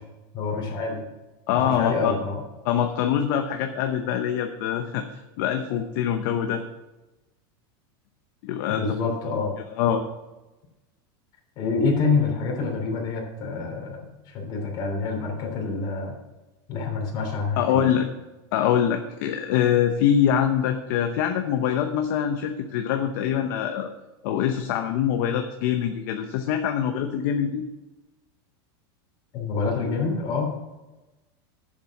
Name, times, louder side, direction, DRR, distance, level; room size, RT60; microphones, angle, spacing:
voice 1, 0.3-1.1 1.5-2.4 8.7-9.5 9.9-10.0 11.6-16.1 16.7-17.9 29.3-30.6, left 4 dB, 35° left, 0 dB, 3.3 m, -27 dB
voice 2, 1.5-2.1 2.6-6.6 8.4-9.0 9.8-10.0 17.6-18.1 18.5-23.9 24.2-27.6, left 9 dB, 50° left, 6 dB, 0.8 m, -24 dB
10.5 x 7.3 x 5.9 m, 1.1 s
supercardioid pair, 165°, 13 cm